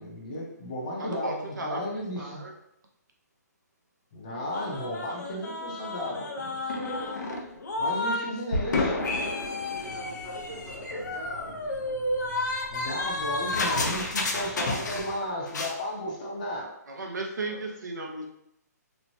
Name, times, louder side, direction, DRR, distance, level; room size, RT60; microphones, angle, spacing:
voice 1, 0.0-2.4 4.1-6.7 7.8-9.0 12.7-16.7, left 1 dB, 25° left, -3 dB, 0.6 m, -34 dB
voice 2, 1.0-2.5 16.9-18.3, right 2 dB, 85° right, 1 dB, 0.7 m, -35 dB
sound 1, 4.5-8.3 8.5-15.2 15.5-15.8, left 2 dB, 80° left, 0.6 m, -31 dB
voice 3, 6.4-7.5 8.8-11.6 17.4-17.7, right 2 dB, 60° right, -3 dB, 1.2 m, -45 dB
sound 2, 9.8-15.2, right 4 dB, 45° right, 0.4 m, -49 dB
3.1 x 2.1 x 2.6 m, 0.79 s
hypercardioid pair, 170°, 9 cm